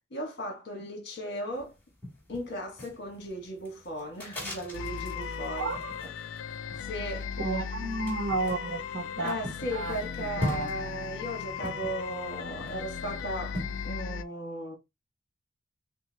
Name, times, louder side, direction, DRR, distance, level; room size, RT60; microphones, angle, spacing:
voice 1, 0.1-1.7 2.3-5.7 6.8-7.3 9.1-13.6 13.8-14.8, equal, 55° left, 1.5 m, -36 dB
sound 1, 1.5-14.0, left 1 dB, 5° left, 2.6 m, -41 dB
sound 2, 4.7-14.2, left 7 dB, 75° left, 0.3 m, -37 dB
voice 2, 5.6-6.0 7.4-9.4 9.7-10.0 10.4-10.7, right 3 dB, 65° right, 0.6 m, -32 dB
5.5 x 2.3 x 2.8 m
head